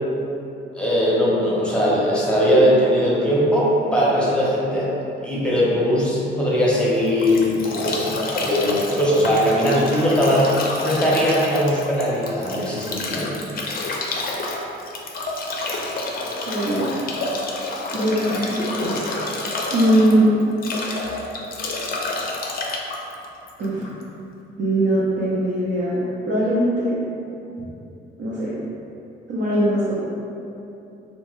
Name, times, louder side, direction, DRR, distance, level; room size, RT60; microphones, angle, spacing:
voice 1, 0.7-10.5 10.8-13.4, equal, 5° left, -7 dB, 0.7 m, -20 dB
Bathtub (filling or washing) / Drip / Trickle dribble, 6.8-24.0, left 2 dB, 50° left, 0.4 m, -29 dB
voice 2, 16.4-17.0 17.9-19.2 19.7-20.3 23.6-23.8 24.6-27.0 28.2-28.5 29.3-29.9, right 1 dB, 60° right, -8 dB, 0.6 m, -21 dB
2.8 x 2.2 x 3.0 m, 2.8 s
cardioid pair, 90°, 20 cm